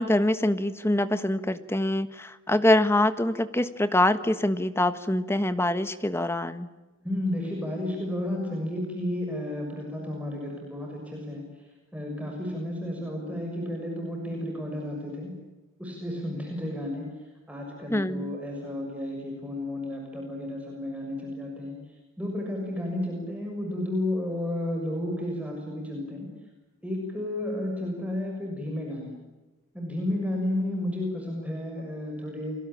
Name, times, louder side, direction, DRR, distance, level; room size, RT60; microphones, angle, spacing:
voice 1, 0.0-6.7 17.9-18.3, left 1 dB, 10° left, 12 dB, 1.4 m, -24 dB
voice 2, 7.0-11.4 11.9-15.3 15.8-17.1 17.5-21.8 22.2-26.3 26.8-29.2 29.7-32.6, left 1 dB, 5° right, 0 dB, 6.8 m, -32 dB
30.0 x 23.0 x 8.8 m, 1.2 s
head